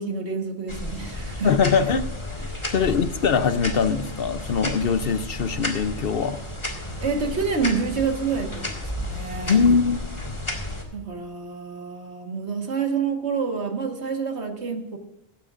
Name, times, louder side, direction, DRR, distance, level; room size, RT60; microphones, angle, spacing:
voice 1, 0.0-1.5 2.5-2.7 7.0-9.6 10.9-15.0, right 5 dB, 65° right, 4 dB, 1.8 m, -28 dB
sound 1, 0.7-10.8, left 1 dB, 25° left, 1.9 m, -32 dB
voice 2, 1.4-2.1 2.7-6.4 9.5-10.0, left 6 dB, 60° left, 11 dB, 0.8 m, -22 dB
17.0 x 13.5 x 2.5 m, 0.87 s
omnidirectional pair, 1.2 m